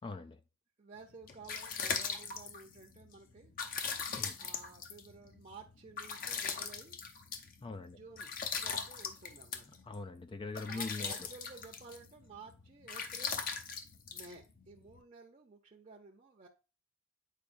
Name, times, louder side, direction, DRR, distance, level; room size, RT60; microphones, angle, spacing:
voice 1, 0.0-0.4 4.2-4.4 7.6-8.0 9.9-11.2, left 3 dB, 25° left, 0.3 m, -42 dB
voice 2, 0.8-3.5 4.4-7.0 7.8-9.8 10.6-13.5 14.1-16.5, right 4 dB, 35° right, 0.7 m, -54 dB
sound 1, 1.0-15.0, left 6 dB, 45° left, 0.7 m, -41 dB
8.3 x 4.7 x 2.6 m
head